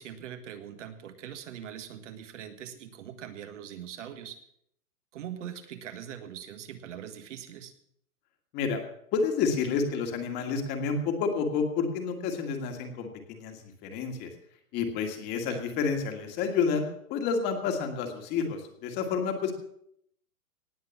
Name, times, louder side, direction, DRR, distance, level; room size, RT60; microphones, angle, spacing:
voice 1, 0.0-4.4 5.1-7.7 15.5-15.6, right 9 dB, 50° right, 9 dB, 1.7 m, -42 dB
voice 2, 9.1-14.3 14.7-19.5, left 5 dB, 20° left, 5 dB, 1.8 m, -29 dB
18.5 x 8.0 x 7.2 m, 0.71 s
hypercardioid pair, 165°, 45 cm